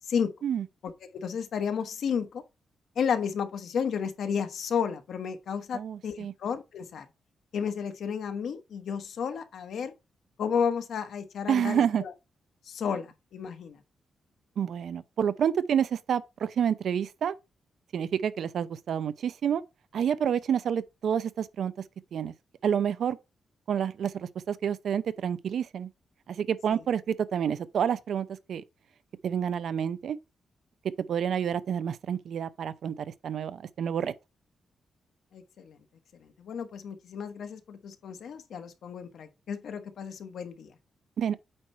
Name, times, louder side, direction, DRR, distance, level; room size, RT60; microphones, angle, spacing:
voice 1, 0.8-2.4 2.9-7.0 7.5-9.9 10.4-12.1 12.7-13.8 35.3-35.8 36.2-40.7, left 7 dB, 70° left, 1.2 m, -32 dB
voice 2, 5.7-6.3 11.5-12.0 14.6-17.4 17.9-19.6 19.9-21.7 22.1-22.3 22.6-23.2 23.7-25.9 26.3-28.6 29.2-30.2 31.1-34.1 41.2-41.3, right 8 dB, 65° right, 0.6 m, -29 dB
8.7 x 3.2 x 5.5 m
wide cardioid pair, 160°, 0 cm